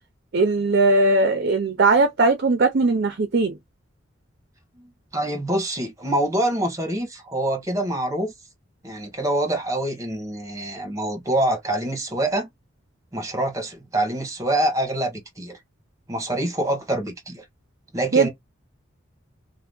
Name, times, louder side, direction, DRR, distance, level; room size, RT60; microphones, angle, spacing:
voice 1, 0.3-3.6 18.1-18.3, right 3 dB, 55° right, 0.5 m, -19 dB
voice 2, 4.8-8.3 8.8-12.5 13.1-15.6 16.1-17.4 17.9-18.3, right 1 dB, 15° right, 1.1 m, -25 dB
2.8 x 2.2 x 3.4 m
head